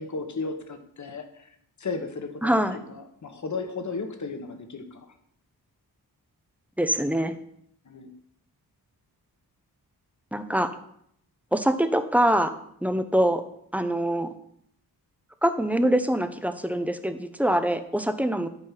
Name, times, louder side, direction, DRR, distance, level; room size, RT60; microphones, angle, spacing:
voice 1, 0.0-1.5 1.8-5.1 7.8-8.1, left 4 dB, 45° left, 6 dB, 1.3 m, -35 dB
voice 2, 2.4-2.8 6.8-7.3 10.3-10.7 11.5-12.5 12.8-13.4 13.7-14.3 15.4-18.5, right 1 dB, 5° right, 9 dB, 0.7 m, -24 dB
10.5 x 4.3 x 5.8 m, 0.71 s
cardioid pair, 75°, 39 cm